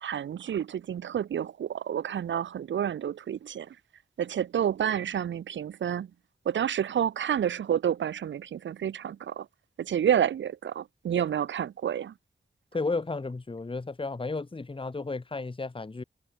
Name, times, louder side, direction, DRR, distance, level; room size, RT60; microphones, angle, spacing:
voice 1, 0.0-3.7 4.2-6.1 6.5-9.5 9.8-12.1, right 9 dB, 80° right, 0.5 m, -29 dB
voice 2, 12.7-16.0, left 3 dB, 25° left, 1.2 m, -33 dB
wide cardioid pair, 80°, 19 cm